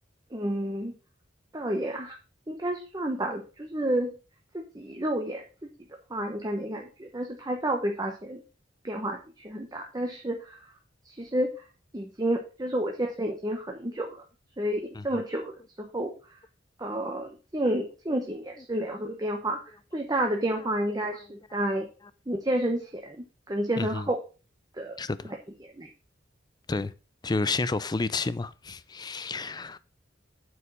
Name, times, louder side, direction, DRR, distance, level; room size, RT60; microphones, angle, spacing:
voice 1, 0.3-0.9 1.5-2.2 2.5-4.1 4.5-5.4 6.1-8.4 8.8-10.6 11.1-11.5 11.9-14.2 14.6-15.5 15.8-16.2 16.8-19.6 19.9-21.9 22.3-24.2 24.8-25.0 25.8-25.9, right 1 dB, 20° right, 1.0 m, -30 dB
voice 2, 23.8-24.1 25.0-25.3 26.7-26.9 27.2-29.8, left 3 dB, 20° left, 0.4 m, -31 dB
8.1 x 4.8 x 5.5 m
head